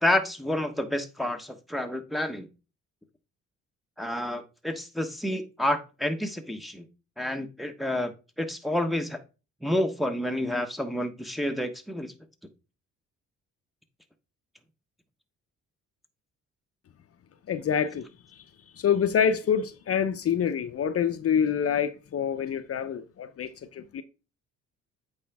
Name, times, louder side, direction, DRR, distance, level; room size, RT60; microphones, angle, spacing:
voice 1, 0.0-2.5 4.0-6.8 7.2-8.1 8.4-9.2 9.6-12.1, left 1 dB, ahead, 1.1 m, -29 dB
voice 2, 17.5-18.4 18.8-24.0, left 8 dB, 50° left, 0.7 m, -26 dB
8.4 x 5.1 x 3.5 m
cardioid pair, 90°, 30 cm